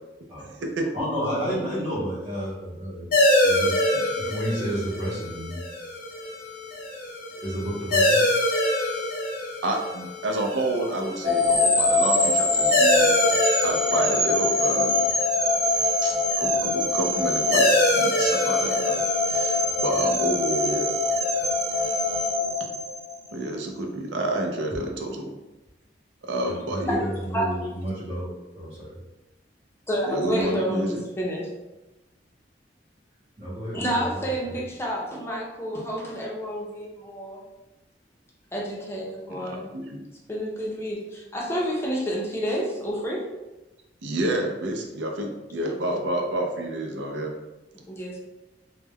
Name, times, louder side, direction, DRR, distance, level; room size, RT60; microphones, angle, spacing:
voice 1, 0.9-3.1 3.4-3.8 4.2-5.6 7.4-8.3 19.8-20.0 26.7-28.3 28.5-29.0 33.4-34.6, equal, 35° right, -11 dB, 0.7 m, -31 dB
sound 1, 3.1-22.3, left 1 dB, 55° left, 0.6 m, -26 dB
voice 2, 9.6-13.1 13.6-15.0 16.0-17.7 18.0-20.9 23.3-25.3 26.2-27.1 30.1-31.0 39.3-40.0 44.0-47.3, right 1 dB, 85° right, 2 dB, 0.5 m, -29 dB
sound 2, 11.2-23.4, left 2 dB, 65° right, 1.0 m, -23 dB
voice 3, 29.9-31.5 33.7-37.4 38.5-39.7 40.3-43.3 47.9-48.2, equal, 15° left, -3 dB, 0.5 m, -29 dB
2.2 x 2.1 x 3.3 m, 1.0 s
head